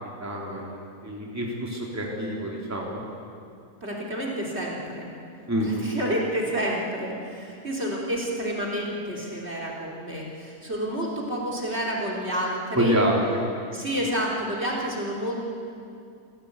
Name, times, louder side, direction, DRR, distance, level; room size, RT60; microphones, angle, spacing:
voice 1, 0.0-3.0 5.5-5.7 12.7-13.4, equal, 10° right, -2 dB, 3.3 m, -27 dB
voice 2, 3.8-5.1 5.6-13.0 13.7-15.4, equal, 40° right, -1 dB, 3.7 m, -29 dB
28.0 x 16.5 x 8.2 m, 2.5 s
omnidirectional pair, 1.7 m